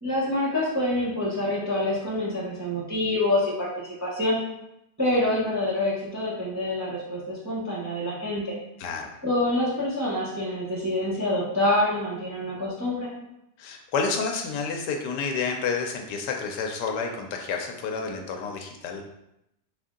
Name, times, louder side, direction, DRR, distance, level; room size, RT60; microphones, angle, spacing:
voice 1, 0.0-4.4 5.0-8.5 9.2-13.1, left 1 dB, 15° right, -7 dB, 0.7 m, -26 dB
voice 2, 8.8-9.1 13.6-19.0, left 5 dB, 80° left, 3 dB, 1.2 m, -29 dB
4.1 x 2.6 x 3.6 m, 0.84 s
omnidirectional pair, 1.8 m